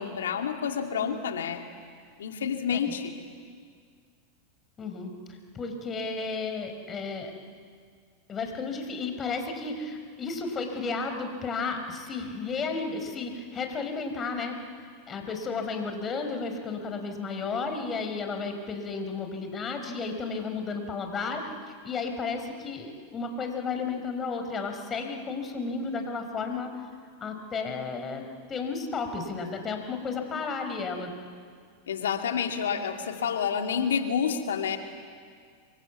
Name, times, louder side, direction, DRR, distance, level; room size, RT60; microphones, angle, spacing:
voice 1, 0.0-1.6 2.2-3.1 31.9-34.8, left 7 dB, 80° left, 5 dB, 2.4 m, -29 dB
voice 2, 4.8-7.3 8.3-14.6 15.1-21.5 21.8-26.7 27.2-28.2 28.5-31.1, left 4 dB, 30° left, 5 dB, 4.6 m, -33 dB
27.5 x 23.5 x 8.3 m, 2.1 s
hypercardioid pair, 100°, 0 cm